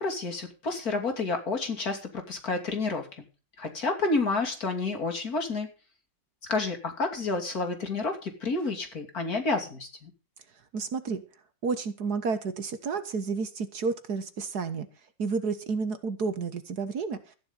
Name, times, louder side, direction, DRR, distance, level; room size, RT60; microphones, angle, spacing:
voice 1, 0.0-3.2 3.6-5.7 6.5-10.1, left 3 dB, 50° left, 3 dB, 3.1 m, -30 dB
voice 2, 10.7-11.2 11.6-14.9 15.2-17.4, right 4 dB, 60° right, 10 dB, 1.8 m, -31 dB
14.5 x 10.5 x 5.4 m, 0.34 s
omnidirectional pair, 2.0 m